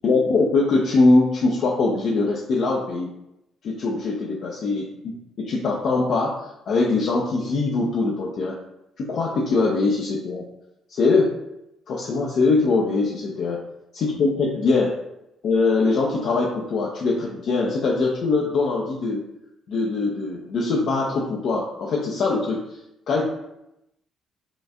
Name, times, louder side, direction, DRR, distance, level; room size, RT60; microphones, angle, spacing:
voice 1, 0.0-3.1 3.6-8.6 9.0-10.4 10.9-11.3 11.9-13.6 13.9-14.9 15.4-19.2 19.7-22.6 23.1-23.2, left 3 dB, 55° left, -2 dB, 0.6 m, -22 dB
6.2 x 2.5 x 2.4 m, 0.85 s
hypercardioid pair, 45°, 0 cm